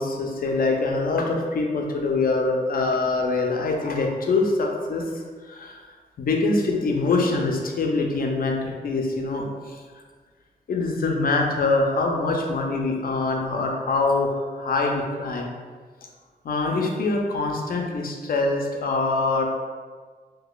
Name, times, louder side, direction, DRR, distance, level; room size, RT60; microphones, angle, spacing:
voice 1, 0.0-5.1 5.4-5.8 6.2-9.8 10.7-15.5 16.4-19.4, left 3 dB, 60° left, 1 dB, 0.5 m, -24 dB
3.7 x 2.8 x 2.3 m, 1.5 s
wide cardioid pair, 125°, 17 cm